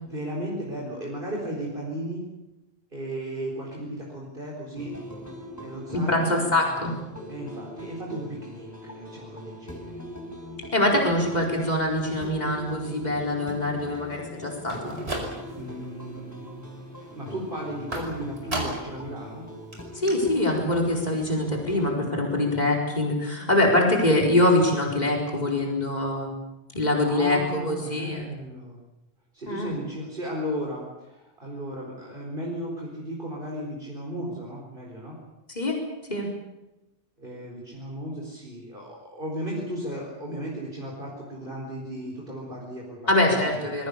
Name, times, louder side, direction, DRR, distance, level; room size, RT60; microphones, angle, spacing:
voice 1, 0.0-2.2 2.9-5.0 5.6-6.3 7.3-10.0 15.6-16.4 17.1-19.5 27.0-28.8 29.3-35.2 37.2-43.0 43.2-43.6, right 1 dB, 55° right, -2 dB, 4.5 m, -35 dB
sound 1, 4.7-22.0, equal, 15° left, 4.1 m, -41 dB
voice 2, 5.9-7.0 10.7-15.0 19.9-26.3 26.7-28.2 29.5-29.8 35.5-35.8 36.1-36.3 43.1-43.9, left 1 dB, 45° left, 0 dB, 4.7 m, -24 dB
sound 2, 14.6-15.7 16.1-16.6 17.9-19.0 19.4-19.5 19.7-19.8 20.1-20.2, right 1 dB, 85° right, 5.7 m, -34 dB
26.0 x 21.5 x 6.9 m, 0.98 s
omnidirectional pair, 1.0 m